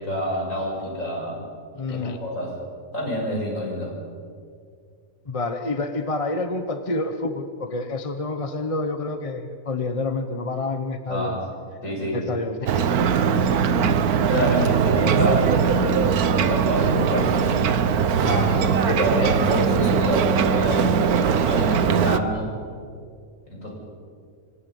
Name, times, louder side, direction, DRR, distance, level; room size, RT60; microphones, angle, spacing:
voice 1, 0.0-1.4 1.9-2.5 2.9-4.0 11.1-11.4 11.8-12.2 13.6-13.8 14.3-17.3 18.9-22.5 23.5-23.7, equal, 60° left, -2 dB, 7.1 m, -27 dB
voice 2, 1.7-2.2 5.3-11.4 12.1-12.8 18.2-19.2, left 2 dB, 25° left, 8 dB, 1.0 m, -28 dB
Ocean, 12.7-22.2, right 7 dB, 85° right, 1.4 m, -21 dB
26.5 x 25.0 x 5.5 m, 2.2 s
omnidirectional pair, 1.5 m